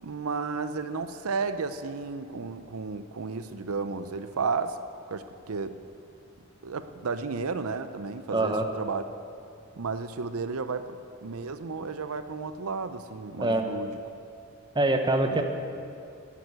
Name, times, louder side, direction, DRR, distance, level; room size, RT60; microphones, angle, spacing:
voice 1, 0.0-4.8 5.1-5.8 6.6-9.0 9.7-14.0 15.3-15.4, right 4 dB, 85° right, 11 dB, 0.6 m, -33 dB
voice 2, 8.3-8.7 13.4-13.7 14.7-15.4, right 2 dB, 20° right, 5 dB, 1.0 m, -24 dB
13.0 x 9.2 x 9.7 m, 2.5 s
head